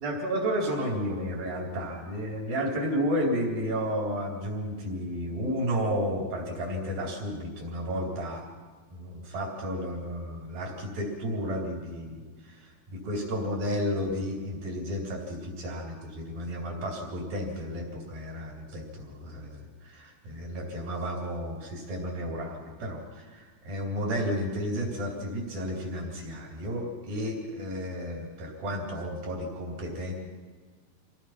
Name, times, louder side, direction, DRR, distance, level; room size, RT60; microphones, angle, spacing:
voice 1, 0.0-8.4 8.9-12.2 12.9-30.1, equal, 55° right, -1 dB, 5.3 m, -32 dB
27.0 x 18.5 x 5.9 m, 1.5 s
omnidirectional pair, 4.8 m